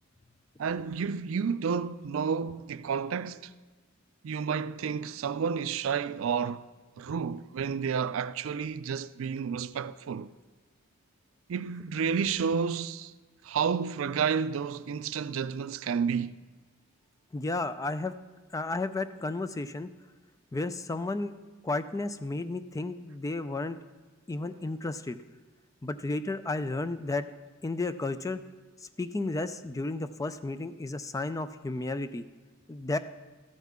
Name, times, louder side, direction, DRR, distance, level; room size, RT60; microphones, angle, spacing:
voice 1, 0.6-3.5 4.2-6.7 7.0-10.3 11.5-13.1 13.4-16.4, right 6 dB, 80° right, 0.4 m, -30 dB
voice 2, 17.3-18.2 18.5-19.9 20.5-21.3 21.6-23.8 24.3-25.2 25.8-27.3 27.6-28.4 28.8-32.2 32.7-33.0, left 2 dB, 15° left, 0.3 m, -33 dB
14.0 x 9.3 x 3.6 m
head